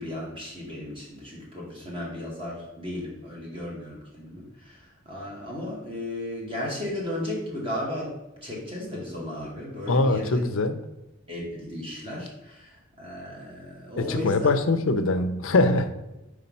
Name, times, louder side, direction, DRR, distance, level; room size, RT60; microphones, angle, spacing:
voice 1, 0.0-8.1 8.4-10.4 11.3-14.5, left 1 dB, 25° right, -4 dB, 1.8 m, -35 dB
voice 2, 9.9-10.8 14.0-15.9, left 2 dB, 70° left, 8 dB, 0.6 m, -22 dB
5.0 x 4.2 x 5.4 m, 0.98 s
head